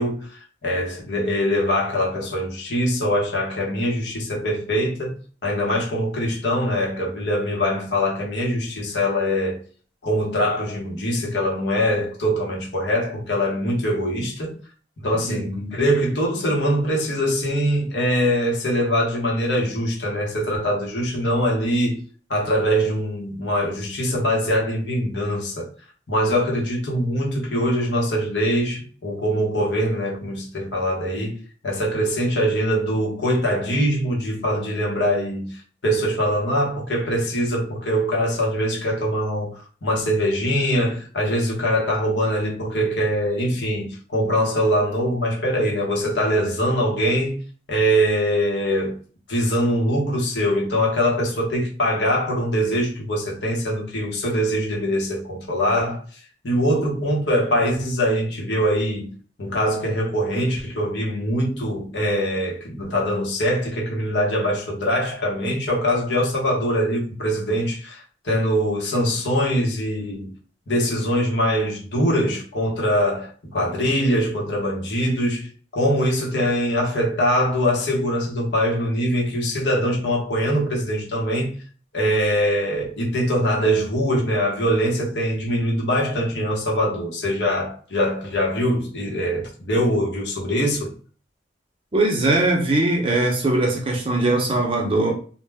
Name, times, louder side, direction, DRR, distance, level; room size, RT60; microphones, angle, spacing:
voice 1, 0.0-9.6 10.0-14.6 15.0-22.0 22.3-25.7 26.1-31.4 31.6-47.4 47.7-49.0 49.3-56.0 56.4-59.1 59.4-70.3 70.7-75.5 75.7-81.6 81.9-90.9, equal, 75° left, 0.9 m, -23 dB
voice 2, 15.3-15.8 91.9-95.1, right 2 dB, 30° right, 0.6 m, -21 dB
2.2 x 2.0 x 3.3 m
head